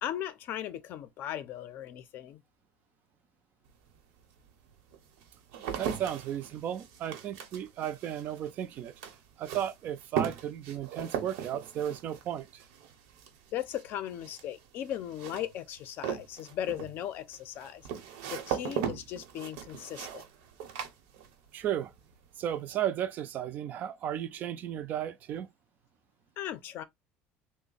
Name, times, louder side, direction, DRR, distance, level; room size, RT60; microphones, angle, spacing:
voice 1, 0.0-2.4 13.5-17.9 18.3-20.2 26.4-26.8, left 11 dB, 50° left, 0.5 m, -37 dB
sound 1, 3.7-3.8 4.5-21.7 21.9-22.5, right 8 dB, 80° right, 0.9 m, -39 dB
voice 2, 5.8-8.9 9.4-12.6 21.5-21.9 22.4-25.5, right 10 dB, 40° right, 0.4 m, -34 dB
3.3 x 2.1 x 3.9 m
cardioid pair, 155°, 4 cm